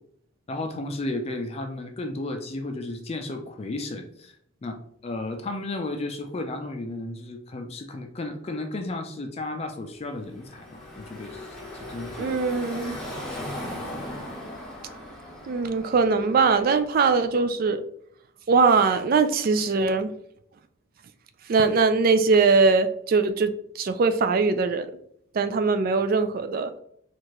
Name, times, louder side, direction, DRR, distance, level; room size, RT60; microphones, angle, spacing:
voice 1, 0.5-4.3 4.6-12.4 13.6-13.8, left 2 dB, 30° left, 5 dB, 0.4 m, -34 dB
Car passing by / Traffic noise roadway noise, 10.1-17.1, left 1 dB, 5° left, 0.8 m, -38 dB
voice 2, 12.2-13.0 15.5-17.8 18.5-20.1 21.5-24.9 25.3-26.7, right 4 dB, 45° right, 10 dB, 0.3 m, -21 dB
4.4 x 2.4 x 3.0 m, 0.68 s
head